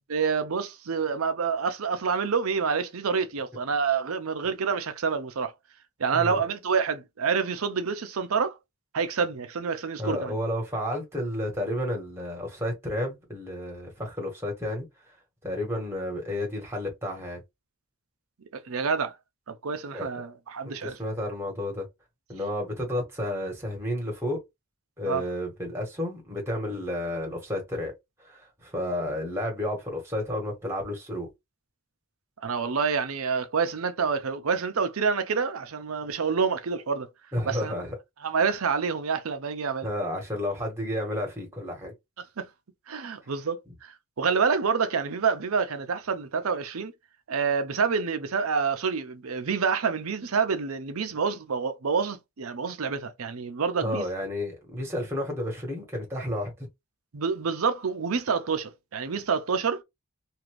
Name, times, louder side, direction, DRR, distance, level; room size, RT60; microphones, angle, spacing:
voice 1, 0.1-5.5 6.0-8.6 8.9-10.4 18.5-19.1 19.5-21.0 25.0-25.2 32.4-37.1 37.5-37.7 38.2-39.9 42.2-42.5 42.9-46.9 47.3-54.0 57.1-59.8, right 5 dB, 75° right, 0.6 m, -27 dB
voice 2, 10.0-14.9 15.4-17.4 19.9-20.1 20.6-21.9 22.3-24.4 25.0-27.9 28.2-31.3 37.3-38.0 39.8-41.9 53.8-56.5, left 1 dB, 10° right, 1.3 m, -31 dB
2.6 x 2.5 x 3.1 m
head